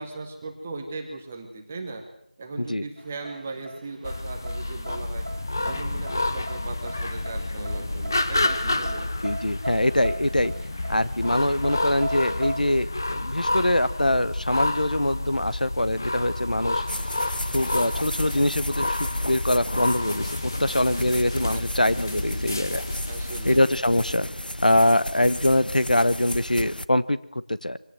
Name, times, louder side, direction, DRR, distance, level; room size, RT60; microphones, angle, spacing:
voice 1, 0.0-2.0 2.4-5.3 5.6-9.1 21.5-22.4 23.0-23.6, right 3 dB, 10° right, 4 dB, 0.9 m, -38 dB
sound 1, 3.0-12.6, right 1 dB, 65° right, 1.3 m, -39 dB
sound 2, 4.0-23.6, left 2 dB, 25° left, 0.8 m, -29 dB
voice 2, 9.2-10.5 10.9-16.8 17.5-22.8 23.4-24.3 24.6-27.2 27.5-27.8, left 1 dB, 60° left, 14 dB, 1.2 m, -23 dB
sound 3, 16.9-26.8, left 1 dB, 80° left, 1.0 m, -34 dB
23.5 x 17.5 x 7.7 m, 0.72 s
figure-of-eight pair, 175°, 5 cm